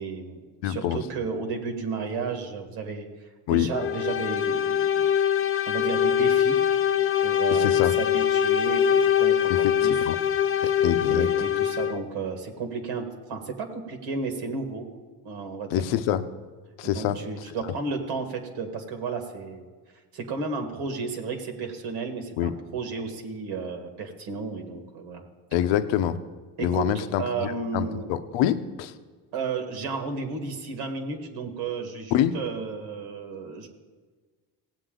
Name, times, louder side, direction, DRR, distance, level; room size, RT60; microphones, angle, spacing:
voice 1, 0.0-3.1 3.5-5.1 5.7-6.6 7.2-10.1 10.6-10.7 11.0-14.9 15.2-15.8 16.8-19.7 20.1-25.2 26.6-28.1 29.3-33.7, right 4 dB, 75° right, 4 dB, 1.7 m, -33 dB
voice 2, 0.6-1.0 3.5-3.7 7.5-7.9 9.5-10.2 10.6-11.3 15.7-16.2 16.8-17.2 17.6-17.7 22.4-22.5 25.5-26.2 26.6-28.9 32.1-32.4, left 11 dB, 85° left, 11 dB, 0.7 m, -26 dB
sound 1, 3.7-12.1, left 9 dB, 35° left, 0.4 m, -23 dB
17.0 x 8.0 x 3.8 m, 1.4 s
cardioid pair, 125°, 43 cm